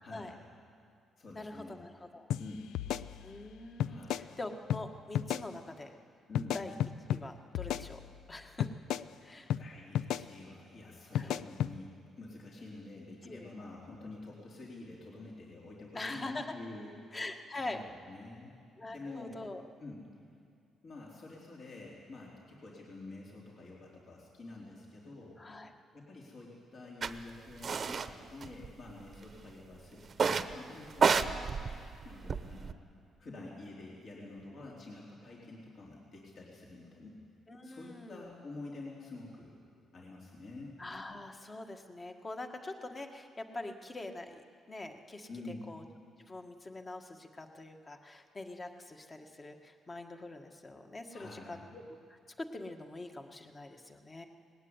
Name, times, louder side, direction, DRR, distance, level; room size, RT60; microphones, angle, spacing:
voice 1, 0.0-0.4 1.2-1.8 2.4-2.7 3.9-4.4 6.3-6.6 9.6-16.9 17.7-18.6 18.8-19.4 19.8-20.0 20.8-25.4 25.9-31.3 32.0-32.7 33.2-37.2 37.6-39.5 39.9-40.7 45.3-45.7 51.1-51.7, left 2 dB, 55° left, -3 dB, 3.8 m, -48 dB
voice 2, 1.3-2.3 3.2-5.9 6.5-6.7 7.1-8.0 8.3-8.7 9.2-9.5 11.1-11.4 13.3-13.5 15.9-16.5 17.1-17.8 18.8-19.6 25.4-25.7 37.5-38.3 40.8-45.3 45.7-45.8 46.2-51.8 52.1-54.2, left 2 dB, 25° left, 5 dB, 1.7 m, -44 dB
sound 1, 2.3-2.4 2.8-3.5 3.8-4.3 4.7-4.8 5.2-5.5 6.4-7.2 7.6-8.3 8.6-9.1 9.5-9.6 10.0-10.3 11.2-11.7, left 10 dB, 85° left, 0.5 m, -33 dB
foot scraps floor, 27.0-27.1 27.6-28.1 28.4-29.1 30.1-30.5 30.9-32.7, right 5 dB, 45° right, 0.9 m, -30 dB
19.5 x 16.0 x 9.7 m, 2.3 s
cardioid pair, 90°, 0 cm